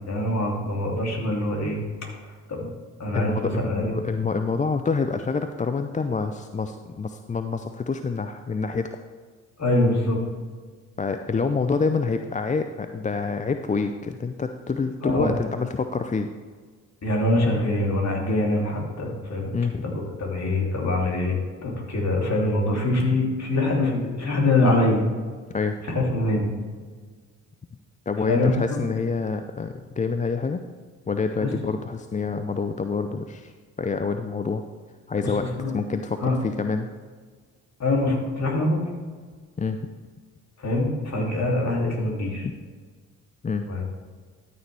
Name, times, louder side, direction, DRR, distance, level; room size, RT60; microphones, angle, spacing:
voice 1, 0.1-1.8 2.2-2.7 3.0-3.9 9.6-10.2 15.0-15.3 17.0-19.5 19.8-25.1 25.8-26.5 28.3-28.8 31.4-31.5 35.2-35.7 36.2-36.3 37.8-38.9 40.6-42.5 43.7-43.8, left 2 dB, 40° left, -1 dB, 2.9 m, -24 dB
voice 2, 3.1-8.9 11.0-16.3 19.5-20.0 25.5-25.8 28.1-30.6 31.1-33.5 33.8-34.6 35.1-35.5 35.7-36.9 39.6-39.8 42.4-42.5 43.4-43.6, left 4 dB, 20° left, 8 dB, 0.5 m, -27 dB
12.5 x 6.7 x 3.4 m, 1.5 s
hypercardioid pair, 50°, 41 cm